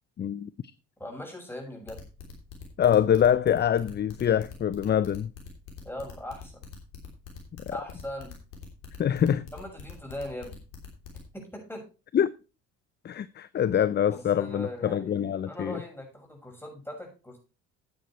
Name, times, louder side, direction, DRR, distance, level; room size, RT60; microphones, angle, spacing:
voice 1, 0.2-0.5 2.8-5.3 9.0-9.5 12.1-12.3 13.0-15.8, left 9 dB, 30° left, 0.5 m, -24 dB
voice 2, 1.0-2.0 5.8-6.6 7.7-8.3 9.5-10.6 11.3-11.9 14.1-17.4, left 1 dB, 5° left, 6.4 m, -40 dB
sound 1, 1.9-11.2, left 6 dB, 85° left, 3.2 m, -44 dB
9.4 x 9.1 x 4.4 m
hypercardioid pair, 60°, 35 cm